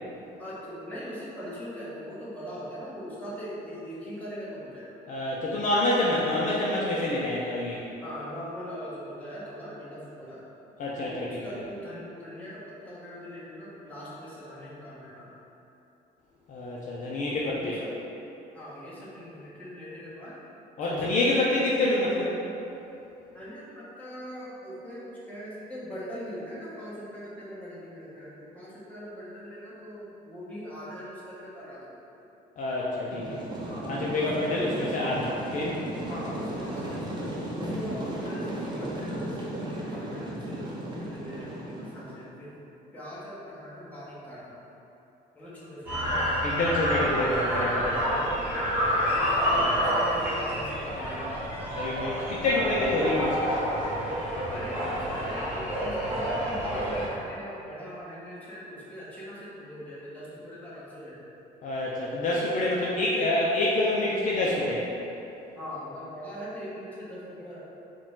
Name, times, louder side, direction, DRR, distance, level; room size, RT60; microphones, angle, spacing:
voice 1, 0.4-5.0 8.0-10.4 11.0-15.3 17.3-17.9 18.5-20.3 20.8-21.5 23.3-32.0 33.7-35.0 36.1-37.3 37.6-42.6 42.9-44.6 45.3-46.1 48.1-48.4 49.1-51.3 54.5-61.3 65.6-67.6, equal, 10° left, -9 dB, 1.2 m, -41 dB
voice 2, 5.1-7.8 10.8-11.3 16.5-17.8 20.8-22.3 32.6-33.4 33.8-35.8 46.4-48.4 49.5-49.9 51.7-53.6 61.6-64.9, left 1 dB, 50° left, -5 dB, 0.5 m, -27 dB
sound 1, 33.1-42.2, right 1 dB, 25° right, 0.7 m, -35 dB
sound 2, 45.9-57.1, equal, 10° right, 1.3 m, -28 dB
4.7 x 2.3 x 3.7 m, 2.9 s
cardioid pair, 110°, 17 cm